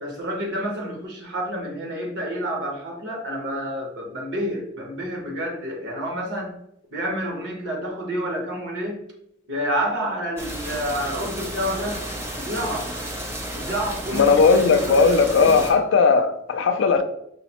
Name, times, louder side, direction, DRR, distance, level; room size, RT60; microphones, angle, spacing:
voice 1, 0.0-6.5 6.9-9.0 9.5-12.0 12.3-12.9 13.5-15.6, equal, 80° right, 1.1 m, -29 dB
sound 1, 10.4-15.7, right 1 dB, 15° right, 0.5 m, -32 dB
voice 2, 14.1-17.0, left 4 dB, 85° left, 0.4 m, -17 dB
4.8 x 2.0 x 2.9 m
head